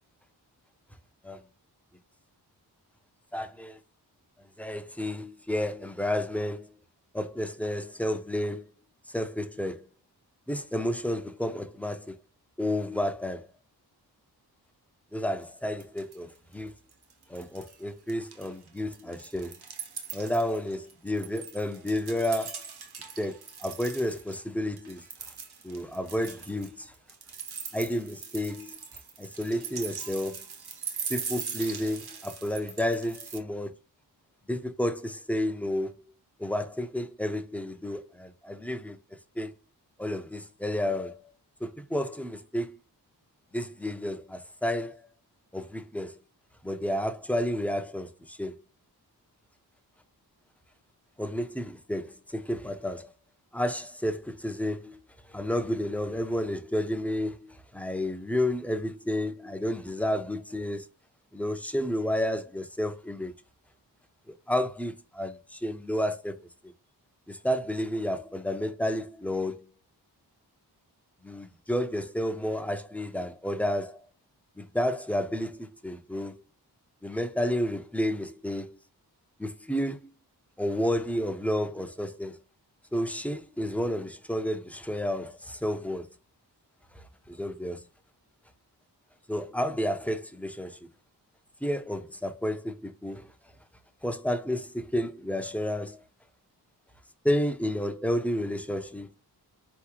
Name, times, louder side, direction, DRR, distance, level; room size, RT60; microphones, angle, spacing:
voice 1, 3.3-3.8 4.6-6.7 7.1-8.7 9.1-9.8 10.5-12.2 12.6-13.5 15.1-16.7 17.3-19.6 20.1-22.6 23.2-25.0 25.6-26.9 27.7-28.8 29.2-30.4 31.1-33.7 34.5-35.9 36.4-39.0 39.4-39.5 40.0-41.3 41.6-42.8 43.5-45.1 45.5-46.2 46.6-48.6 51.2-53.1 53.5-55.0 55.3-60.9 61.3-63.3 64.5-66.4 67.3-69.6 71.2-74.0 74.6-76.4 77.0-78.8 79.4-80.1 80.6-82.4 82.9-86.1 87.0-87.8 89.3-90.8 91.6-93.3 94.0-96.0 97.2-99.1, left 1 dB, 5° left, 0.5 m, -31 dB
sound 1, 15.4-15.5 15.8-16.4 16.7-17.8 18.1-24.4 24.8-33.4, right 6 dB, 70° right, 1.0 m, -41 dB
4.1 x 3.5 x 3.0 m
wide cardioid pair, 100°, 40 cm